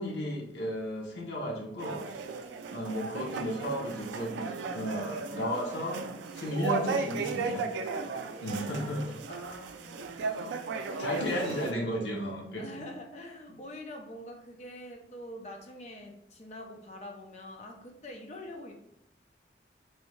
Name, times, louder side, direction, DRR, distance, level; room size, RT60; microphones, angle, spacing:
voice 1, 0.0-2.0 2.7-4.5 4.7-6.1 6.3-7.7 8.4-9.2 11.0-12.8, equal, 80° left, -2 dB, 0.7 m, -34 dB
sound 1, 1.8-11.7, right 4 dB, 85° right, 0.3 m, -36 dB
voice 2, 8.4-11.6 12.6-18.7, left 1 dB, 40° left, 2 dB, 0.6 m, -45 dB
3.1 x 2.7 x 3.1 m, 0.77 s
head